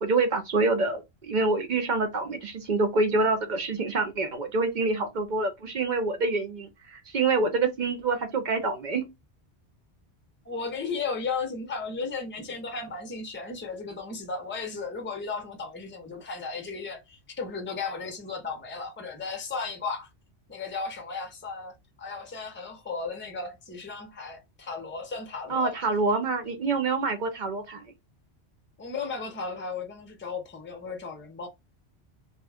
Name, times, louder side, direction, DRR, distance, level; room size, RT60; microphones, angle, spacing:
voice 1, 0.0-9.0 25.5-27.8, right 3 dB, 55° right, 0.6 m, -26 dB
voice 2, 10.4-20.1 20.5-25.7 28.8-31.5, left 4 dB, 15° left, 0.6 m, -35 dB
2.6 x 2.3 x 3.3 m
omnidirectional pair, 1.1 m